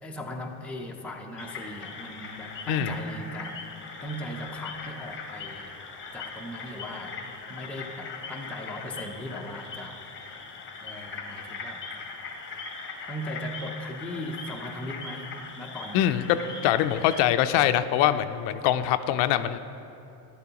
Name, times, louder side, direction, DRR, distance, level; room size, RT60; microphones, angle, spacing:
voice 1, 0.0-3.6 4.0-5.7 6.1-7.2 7.5-10.0 10.8-11.9 13.1-15.3 15.6-16.2, equal, 5° left, 0 dB, 0.5 m, -38 dB
sound 1, 1.4-17.2, left 4 dB, 25° left, 0.8 m, -40 dB
voice 2, 15.9-19.6, left 11 dB, 60° left, 11 dB, 0.5 m, -23 dB
12.5 x 10.5 x 2.9 m, 2.8 s
cardioid pair, 130°, 48 cm